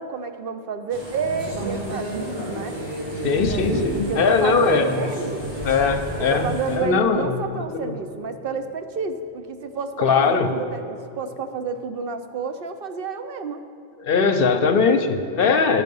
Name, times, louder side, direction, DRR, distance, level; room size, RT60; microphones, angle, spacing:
voice 1, 0.0-2.8 3.3-5.4 6.2-13.6, right 5 dB, 65° right, 8 dB, 0.7 m, -30 dB
sound 1, 0.9-6.8, equal, 85° right, 2.9 m, -30 dB
voice 2, 3.2-5.1 5.6-6.5 6.8-7.4 7.7-8.0 10.0-10.5 14.0-15.8, left 5 dB, 60° left, 7 dB, 0.7 m, -20 dB
sound 2, 3.7-7.1, right 2 dB, 30° right, 0.7 m, -37 dB
12.0 x 6.2 x 5.3 m, 2.6 s
omnidirectional pair, 1.1 m